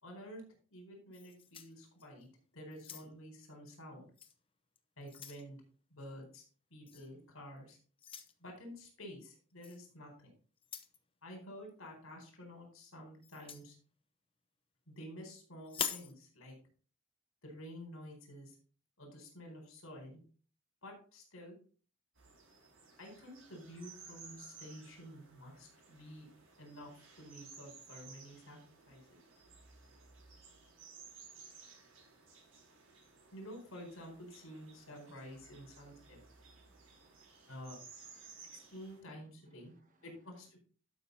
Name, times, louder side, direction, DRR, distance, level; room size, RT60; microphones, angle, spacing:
voice 1, 0.0-2.3 2.5-4.1 5.0-5.6 5.9-6.4 6.7-7.8 8.4-10.3 11.2-13.7 14.9-16.5 17.4-18.6 19.0-20.2 20.8-21.6 23.0-26.3 26.6-26.9 27.2-28.6 28.9-29.2 33.3-36.2 37.5-37.8 38.4-39.7 40.0-40.6, equal, 80° left, 1 dB, 4.4 m, -50 dB
sound 1, 1.1-2.3 2.7-3.4 4.2-4.3 4.8-5.5 6.9-7.1 8.0-8.3 9.6-9.8 10.6-11.0 13.2-13.7 15.6-16.1, left 8 dB, 25° left, 0.8 m, -43 dB
sound 2, 22.2-39.0, right 5 dB, 75° right, 5.4 m, -57 dB
voice 2, 35.8-37.5 38.1-38.7 39.6-40.0, right 2 dB, 40° right, 6 dB, 1.6 m, -73 dB
12.0 x 6.0 x 4.1 m, 0.41 s
head